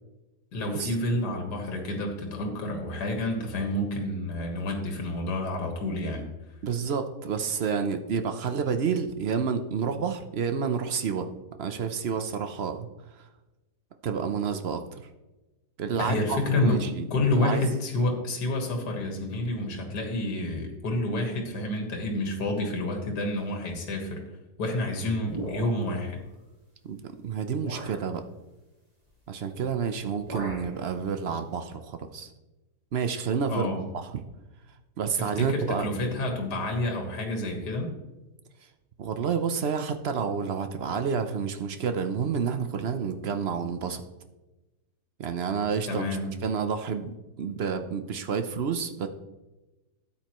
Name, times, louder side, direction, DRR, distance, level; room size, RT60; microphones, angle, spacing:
voice 1, 0.5-6.2 16.0-16.8 17.1-24.2 24.6-26.2 33.5-33.9 35.1-37.9 45.9-46.3, left 2 dB, 75° left, 3 dB, 2.1 m, -29 dB
voice 2, 6.6-11.3 11.6-12.9 14.0-15.0 15.8-17.1 17.3-17.6 26.9-28.2 29.3-32.3 32.9-33.7 33.9-34.2 35.0-35.9 39.0-44.0 45.2-46.0 46.4-49.1, right 6 dB, 55° right, 8 dB, 0.7 m, -29 dB
sound 1, 25.3-26.1 26.9-27.0 27.6-28.0 29.4-29.7 30.0-30.8, right 1 dB, 25° right, 2.0 m, -38 dB
13.0 x 8.9 x 3.1 m, 1.1 s
omnidirectional pair, 1.8 m